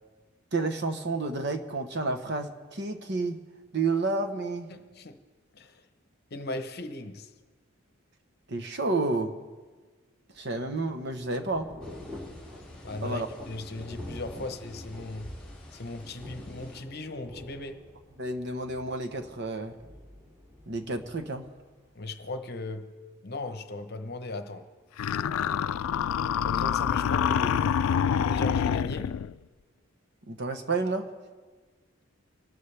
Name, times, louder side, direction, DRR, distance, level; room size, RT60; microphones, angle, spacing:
voice 1, 0.5-3.4 3.7-4.7 8.5-9.3 10.4-11.8 13.0-13.3 14.4-14.5 18.2-19.8 20.7-21.5 30.3-31.1, right 3 dB, 55° right, 1.1 m, -30 dB
voice 2, 4.7-5.2 5.5-5.8 6.3-7.3 12.8-15.3 15.7-17.9 21.9-22.9 23.2-24.7 25.3-25.6 26.3-27.8 28.1-29.1, left 2 dB, 50° left, 0.9 m, -38 dB
Thunder / Rain, 10.4-22.3, left 1 dB, 15° right, 2.4 m, -47 dB
sound 1, 11.8-16.8, left 1 dB, 5° left, 3.7 m, -49 dB
sound 2, 25.0-29.3, left 8 dB, 85° left, 0.3 m, -26 dB
25.5 x 12.5 x 3.4 m
head